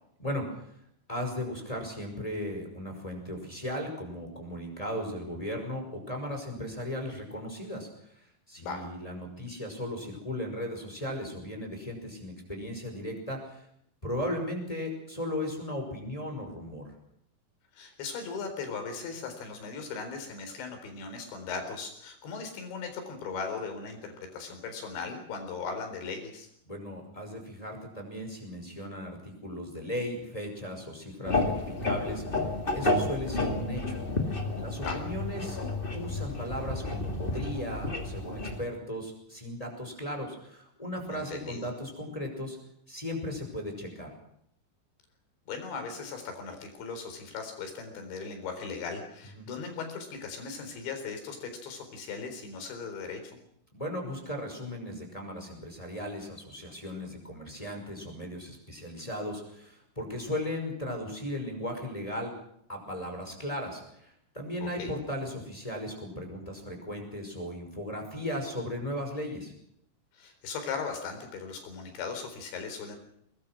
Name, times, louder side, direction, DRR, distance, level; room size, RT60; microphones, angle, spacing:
voice 1, 1.1-7.9 8.5-13.6 14.0-16.9 26.7-32.2 32.7-34.0 34.6-35.6 35.9-42.6 42.9-44.1 49.3-49.5 53.7-62.3 62.7-69.5, left 1 dB, 5° left, 2 dB, 4.9 m, -36 dB
voice 2, 17.7-26.5 34.8-35.0 41.1-41.7 45.5-53.4 64.6-64.9 70.1-73.0, left 5 dB, 70° left, 6 dB, 6.4 m, -38 dB
sound 1, 31.2-38.6, left 2 dB, 35° left, 0.8 m, -31 dB
23.0 x 21.0 x 6.3 m, 0.72 s
omnidirectional pair, 5.3 m